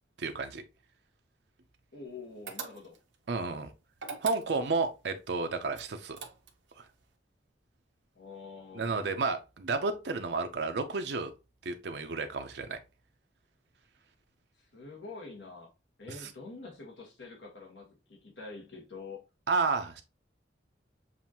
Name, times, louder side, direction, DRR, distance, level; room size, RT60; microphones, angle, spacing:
voice 1, 0.2-0.6 3.3-3.7 4.2-6.2 8.7-11.3 11.6-12.8 16.2-16.3 19.5-20.0, right 4 dB, 65° right, 0.6 m, -31 dB
voice 2, 1.9-3.0 8.1-9.2 14.6-15.7 16.0-19.2, left 3 dB, 80° left, 1.3 m, -46 dB
sound 1, 2.5-3.1 3.9-4.8 5.7-6.7, right 6 dB, 90° right, 0.8 m, -42 dB
7.2 x 2.5 x 2.9 m
head